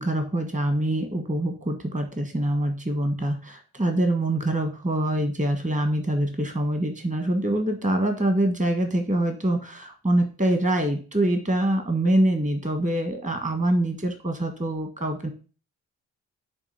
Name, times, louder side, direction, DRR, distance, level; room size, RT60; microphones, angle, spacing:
voice 1, 0.0-15.3, right 1 dB, 20° right, 6 dB, 1.6 m, -25 dB
7.0 x 3.0 x 6.0 m, 0.36 s
hypercardioid pair, 45°, 33 cm